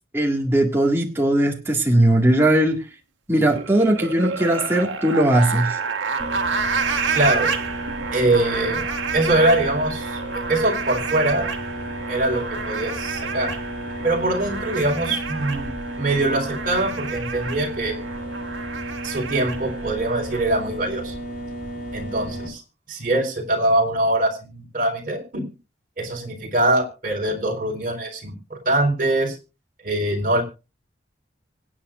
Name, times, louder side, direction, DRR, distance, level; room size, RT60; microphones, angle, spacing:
voice 1, 0.1-2.8 3.3-5.8, right 1 dB, 15° right, -1 dB, 2.0 m, -19 dB
sound 1, 3.4-20.4, right 5 dB, 85° right, 1.5 m, -30 dB
sound 2, 6.2-22.5, equal, 40° left, 3.1 m, -33 dB
voice 2, 7.1-7.5 8.1-8.9 9.1-10.2 10.5-11.5 12.1-13.5 14.0-15.7 16.0-17.9 19.0-21.1 21.9-22.6 22.9-25.5 26.0-29.4 29.8-30.4, right 1 dB, 45° right, 1 dB, 3.9 m, -23 dB
25.0 x 8.8 x 2.5 m, 0.30 s
head